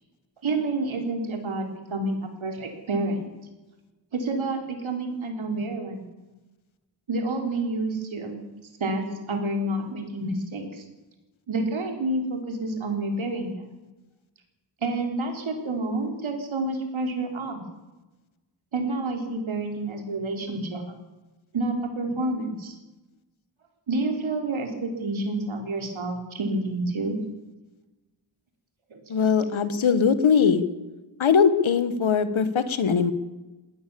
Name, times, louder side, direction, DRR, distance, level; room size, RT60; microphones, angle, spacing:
voice 1, 0.4-3.3 4.1-6.1 7.1-8.4 8.8-10.8 11.5-13.6 14.8-17.6 18.7-20.8 21.5-22.7 23.9-27.2 28.9-29.0, right 2 dB, 85° right, 3 dB, 4.1 m, -29 dB
voice 2, 29.1-30.6 31.2-33.1, left 6 dB, 90° left, 12 dB, 1.7 m, -21 dB
21.0 x 17.5 x 7.1 m, 1.1 s
wide cardioid pair, 110°, 46 cm